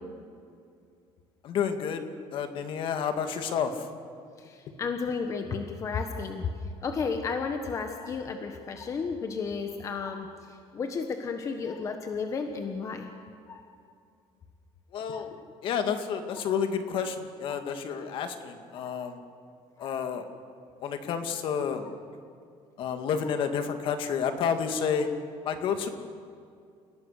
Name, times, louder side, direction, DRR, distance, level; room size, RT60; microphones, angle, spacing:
voice 1, 1.4-3.9 14.9-15.4 15.6-19.2 19.8-20.2 20.8-21.9 22.8-25.1 25.5-25.9, left 7 dB, 55° left, 7 dB, 2.1 m, -30 dB
voice 2, 4.4-6.5 6.8-13.1 13.5-13.7 15.1-15.3 17.5-17.6 18.8-18.9 19.8-19.9, left 5 dB, 30° left, 5 dB, 1.3 m, -33 dB
29.5 x 17.5 x 6.7 m, 2.3 s
cardioid pair, 155°, 10 cm